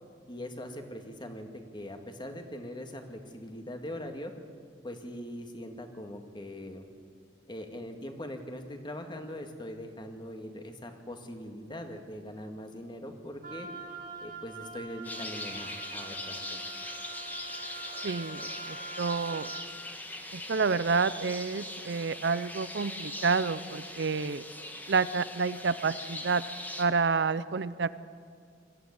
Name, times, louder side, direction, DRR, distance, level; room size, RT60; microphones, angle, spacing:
voice 1, 0.3-4.3 4.8-6.9 7.5-13.7 14.2-16.6, left 1 dB, 25° left, 5 dB, 2.0 m, -41 dB
Wind instrument woodwind instrument, 13.4-19.7, right 4 dB, 50° right, 2.5 m, -44 dB
sound 1, 15.0-26.8, left 1 dB, 10° left, 1.7 m, -41 dB
voice 2, 18.0-19.5 20.3-24.5 24.9-26.4 26.8-27.9, right 4 dB, 70° right, 15 dB, 0.6 m, -29 dB
22.5 x 14.5 x 9.7 m, 2.3 s
head